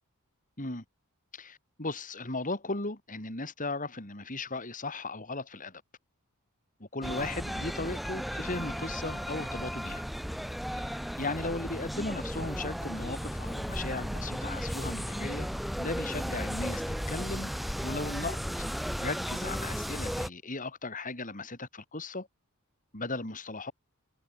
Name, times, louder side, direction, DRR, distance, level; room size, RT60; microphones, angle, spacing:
voice 1, 1.3-5.8 6.8-10.0 10.7-15.5 15.8-17.5 17.8-18.7 19.0-22.3 22.9-23.7, left 2 dB, 35° left, 5.7 m, -37 dB
sound 1, 7.0-20.3, equal, ahead, 1.5 m, -35 dB
head